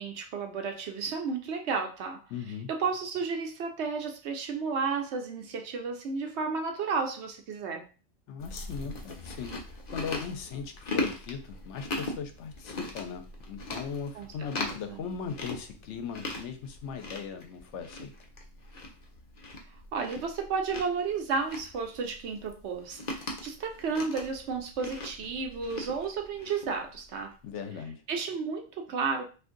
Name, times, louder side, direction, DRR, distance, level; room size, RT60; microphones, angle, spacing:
voice 1, 0.0-2.2 2.7-7.9 14.1-14.3 14.9-15.0 19.9-27.3 28.1-29.3, right 5 dB, 70° right, 4 dB, 0.9 m, -32 dB
voice 2, 2.3-2.7 8.3-18.1 27.4-28.0, left 6 dB, 70° left, 7 dB, 0.9 m, -38 dB
Chewing mastication, 8.4-27.3, left 2 dB, 45° left, 0.6 m, -40 dB
2.6 x 2.5 x 3.7 m, 0.34 s
omnidirectional pair, 1.3 m